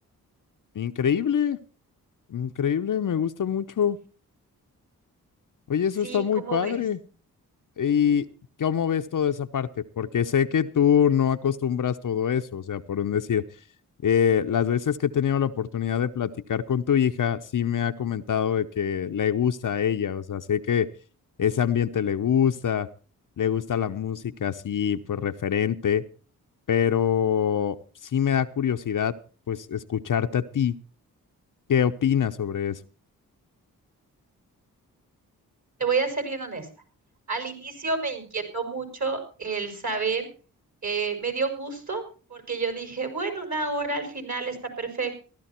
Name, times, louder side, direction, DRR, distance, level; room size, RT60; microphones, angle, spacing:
voice 1, 0.7-1.6 2.3-4.0 5.7-7.0 7.8-8.2 8.6-13.4 14.0-20.9 21.4-22.9 23.4-26.0 26.7-27.8 28.1-29.2 29.5-30.8 31.7-32.8, left 8 dB, 55° left, 9 dB, 0.8 m, -24 dB
voice 2, 6.0-6.8 35.8-36.7 37.3-40.3 40.8-42.0 42.3-45.2, right 4 dB, 45° right, 6 dB, 5.1 m, -29 dB
15.0 x 12.0 x 4.4 m, 0.37 s
supercardioid pair, 40°, 38 cm